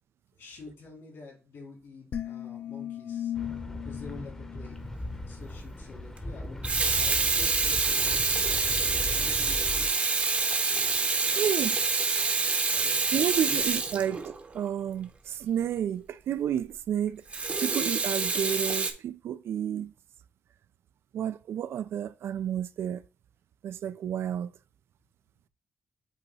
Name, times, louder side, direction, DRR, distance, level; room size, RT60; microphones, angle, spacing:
voice 1, 0.4-3.3 3.8-4.8 5.3-9.7 10.7-11.4 11.7-11.9 12.8-13.6, left 4 dB, 75° left, 3.6 m, -48 dB
sound 1, 2.1-5.5, left 10 dB, 55° left, 0.7 m, -37 dB
sound 2, 3.3-9.9, left 1 dB, 15° left, 0.8 m, -38 dB
Water tap faucet / Sink (filling or washing), 4.9-5.1 6.4-14.6 17.3-18.9, right 4 dB, 30° right, 0.7 m, -27 dB
voice 2, 11.4-11.8 12.7-17.2 17.6-19.9 21.1-23.0 23.6-24.5, right 9 dB, 85° right, 0.4 m, -31 dB
8.2 x 2.9 x 4.1 m
wide cardioid pair, 175°, 4 cm